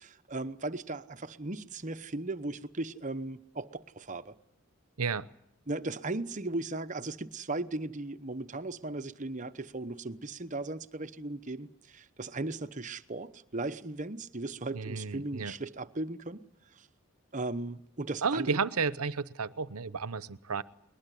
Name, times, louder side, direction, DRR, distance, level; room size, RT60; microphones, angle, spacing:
voice 1, 0.0-4.4 5.7-16.5 16.7-16.9 17.3-18.6, right 2 dB, 35° right, 0.9 m, -37 dB
voice 2, 14.7-15.5 18.2-20.6, right 5 dB, 80° right, 0.8 m, -32 dB
21.5 x 20.5 x 9.9 m
head